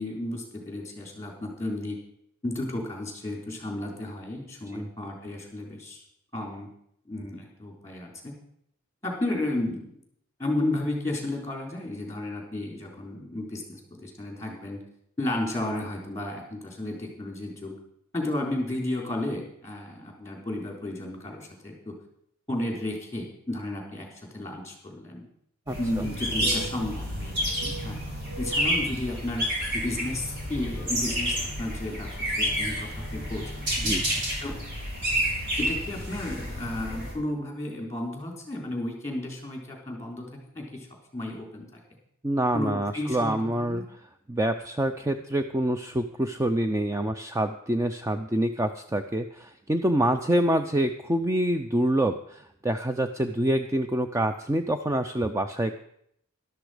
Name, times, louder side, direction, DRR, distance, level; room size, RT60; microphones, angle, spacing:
voice 1, 0.0-2.0 2.4-6.0 6.3-6.7 7.1-8.3 9.0-9.9 10.4-14.8 15.2-17.8 18.1-22.0 22.5-24.1 24.3-25.3 25.8-28.0 28.4-29.5 29.7-33.7 34.4-34.6 35.6-40.9 41.1-41.8 42.5-43.9, left 1 dB, 15° left, 0 dB, 3.8 m, -33 dB
voice 2, 25.7-26.1 33.8-34.0 42.2-43.8 44.3-55.7, right 1 dB, 15° right, 7 dB, 0.5 m, -26 dB
sound 1, 25.7-37.1, equal, 60° right, 5.0 m, -30 dB
12.5 x 12.0 x 5.0 m, 0.71 s
head